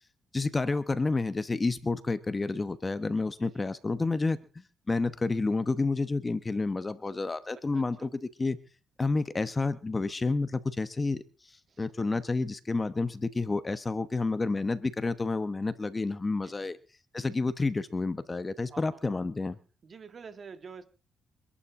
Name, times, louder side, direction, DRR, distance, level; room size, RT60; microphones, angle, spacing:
voice 1, 0.3-4.4 4.9-8.6 9.0-16.8 17.1-19.6, left 3 dB, 25° left, 13 dB, 1.1 m, -30 dB
voice 2, 7.7-8.1 11.7-11.9 16.4-16.7 18.7-19.0 19.8-20.8, right 5 dB, 45° right, 9 dB, 2.2 m, -48 dB
27.0 x 11.5 x 3.7 m, 0.36 s
cardioid pair, 90°, 0 cm